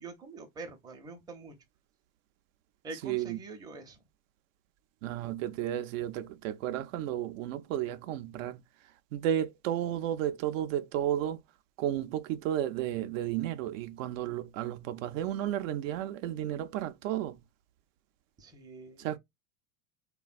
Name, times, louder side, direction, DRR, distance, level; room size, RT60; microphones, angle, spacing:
voice 1, 0.0-1.5 2.8-4.0 18.4-19.2, right 3 dB, 10° right, 0.5 m, -45 dB
voice 2, 3.0-3.4 5.0-8.6 9.1-11.4 11.8-17.3 19.0-19.2, right 11 dB, 75° right, 0.5 m, -33 dB
3.2 x 2.2 x 2.4 m
supercardioid pair, 125°, 39 cm